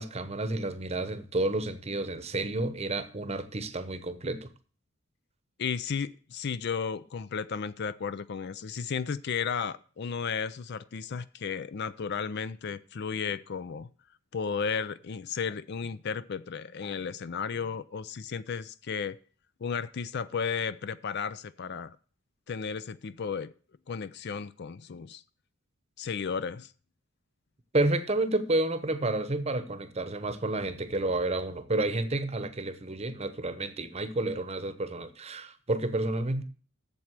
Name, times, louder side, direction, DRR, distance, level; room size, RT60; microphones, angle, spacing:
voice 1, 0.0-4.5 27.7-36.4, right 2 dB, 30° right, 0.9 m, -30 dB
voice 2, 5.6-13.9 14.3-19.2 19.6-22.0 22.5-23.5 23.9-25.2 26.0-26.7, left 6 dB, 50° left, 0.4 m, -34 dB
7.9 x 7.3 x 7.4 m
head